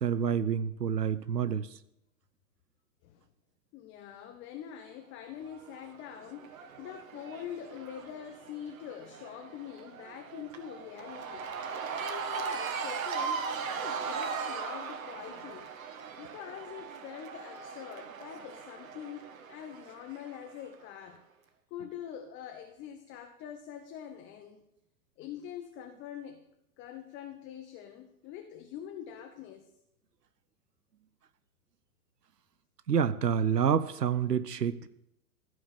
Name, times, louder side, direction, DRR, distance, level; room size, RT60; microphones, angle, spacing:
voice 1, 0.0-1.7 32.9-34.9, right 7 dB, 80° right, 14 dB, 0.8 m, -28 dB
voice 2, 3.7-11.5 12.0-13.4 13.7-15.7 16.1-21.2 21.7-24.6 25.2-26.4 26.8-29.7, left 9 dB, 25° left, 6 dB, 1.1 m, -44 dB
Cheering / Crowd, 5.5-20.7, right 5 dB, 55° right, 1.8 m, -39 dB
15.5 x 6.5 x 8.4 m, 0.82 s
figure-of-eight pair, 105°, 48 cm